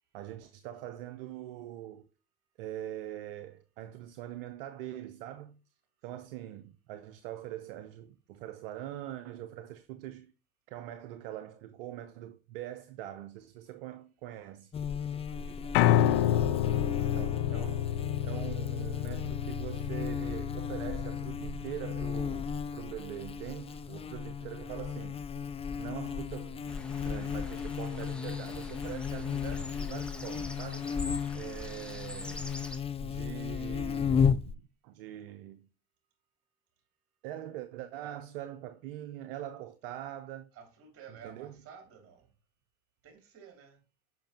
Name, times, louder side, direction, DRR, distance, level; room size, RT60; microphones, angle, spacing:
voice 1, 0.1-2.0 2.6-5.6 6.0-10.3 10.7-14.7 17.1-17.9 18.2-25.3 25.8-30.9 31.3-32.6 33.0-35.7 37.2-40.5 41.1-41.6, right 12 dB, 70° right, 0.7 m, -43 dB
Buzz, 14.7-34.5, left 6 dB, 20° left, 0.4 m, -35 dB
voice 2, 14.9-17.2 38.0-38.2 40.5-42.3 43.0-43.8, right 7 dB, 50° right, 2.7 m, -54 dB
Piano, 15.7-21.9, left 11 dB, 65° left, 0.6 m, -29 dB
sound 1, 26.7-32.8, left 1 dB, 5° left, 1.1 m, -47 dB
7.2 x 5.7 x 2.9 m
hypercardioid pair, 70°, 30 cm